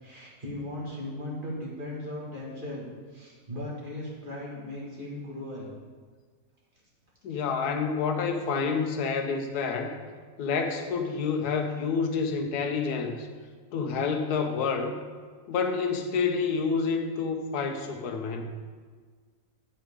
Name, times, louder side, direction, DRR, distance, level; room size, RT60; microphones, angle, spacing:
voice 1, 0.0-2.8 3.1-5.7, left 1 dB, 35° right, -5 dB, 2.0 m, -37 dB
voice 2, 7.2-10.0 10.4-13.3 13.7-14.9 15.5-18.5, left 5 dB, 85° left, 5 dB, 1.3 m, -28 dB
9.1 x 7.6 x 3.6 m, 1.5 s
omnidirectional pair, 1.6 m